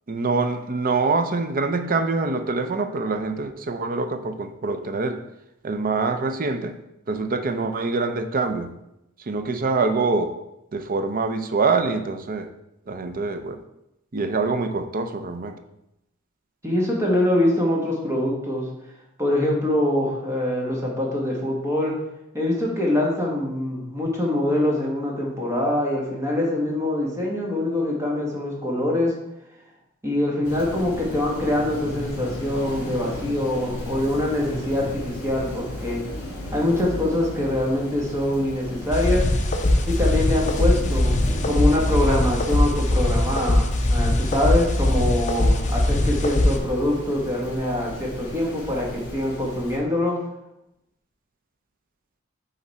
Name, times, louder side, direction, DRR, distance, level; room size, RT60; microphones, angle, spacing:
voice 1, 0.1-5.2 5.6-6.7 7.1-8.7 9.3-10.3 10.7-12.5 12.9-13.6 14.1-15.5, right 3 dB, 45° right, 8 dB, 0.6 m, -25 dB
voice 2, 16.6-18.7 19.2-22.0 22.3-29.2 30.0-36.0 36.5-39.3 39.9-50.2, left 1 dB, 15° right, -2 dB, 1.5 m, -24 dB
Rain, 30.4-49.8, left 1 dB, 60° left, 2.4 m, -35 dB
sound 1, 38.9-46.6, left 1 dB, 35° left, 0.7 m, -21 dB
8.1 x 3.9 x 4.2 m, 0.86 s
head